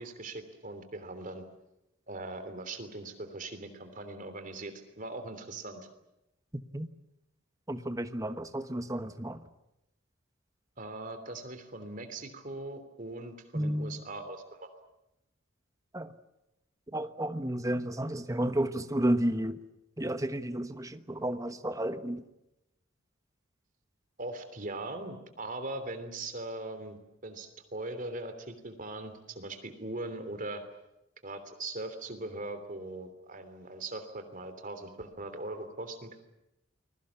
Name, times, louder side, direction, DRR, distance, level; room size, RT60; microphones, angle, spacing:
voice 1, 0.0-1.4 2.1-5.9 10.8-14.7 24.2-27.0 27.2-30.6 31.2-36.2, right 2 dB, 40° right, 8 dB, 3.2 m, -40 dB
voice 2, 7.7-9.4 13.5-14.0 15.9-16.1 16.9-19.6 20.0-22.2, right 1 dB, 15° right, 10 dB, 1.2 m, -32 dB
29.5 x 22.0 x 7.2 m, 0.89 s
head